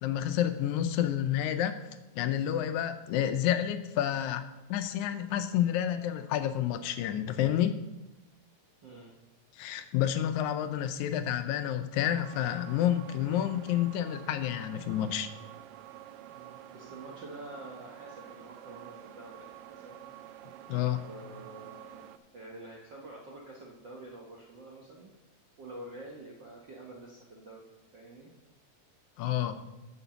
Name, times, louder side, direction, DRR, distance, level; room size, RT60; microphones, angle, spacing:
voice 1, 0.0-1.8 2.1-4.4 4.7-7.8 9.6-15.3 20.7-21.0 29.2-29.7, left 11 dB, 80° left, 9 dB, 1.9 m, -29 dB
voice 2, 8.8-9.1 16.3-20.0 21.0-22.1 22.3-25.1 25.6-27.6 27.9-28.3, right 2 dB, 65° right, -2 dB, 1.1 m, -47 dB
sound 1, 12.2-22.2, right 12 dB, 80° right, 2.0 m, -49 dB
8.1 x 6.8 x 6.9 m, 1.0 s
omnidirectional pair, 3.6 m